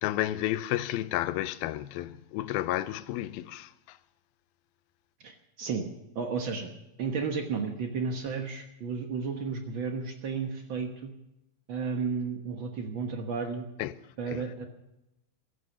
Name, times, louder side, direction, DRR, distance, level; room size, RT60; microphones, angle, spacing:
voice 1, 0.0-4.0 13.8-13.9 14.3-14.5, left 14 dB, 90° left, 2.5 m, -32 dB
voice 2, 5.2-6.7 7.0-11.1 11.7-13.7 14.2-14.6, right 5 dB, 85° right, 1.0 m, -33 dB
16.0 x 12.5 x 6.9 m
omnidirectional pair, 4.2 m